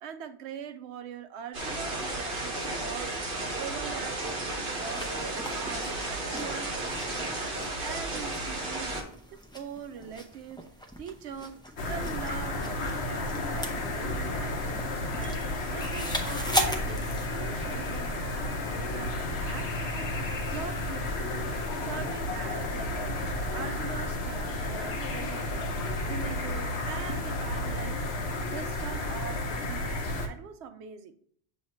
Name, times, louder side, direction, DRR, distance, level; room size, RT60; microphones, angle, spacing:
voice 1, 0.0-7.5 7.8-8.9 9.3-10.7 11.0-14.6 15.1-15.4 15.7-20.1 20.5-21.5 21.8-25.7 26.1-28.1 28.5-31.2, right 7 dB, 85° right, 9 dB, 0.9 m, -42 dB
sound 1, 1.5-9.0, right 2 dB, 55° right, 1.3 m, -33 dB
sound 2, 4.7-18.0, left 1 dB, 5° left, 0.6 m, -38 dB
sound 3, 11.8-30.3, left 2 dB, 75° left, 1.1 m, -32 dB
7.3 x 3.1 x 4.3 m, 0.62 s
omnidirectional pair, 1.1 m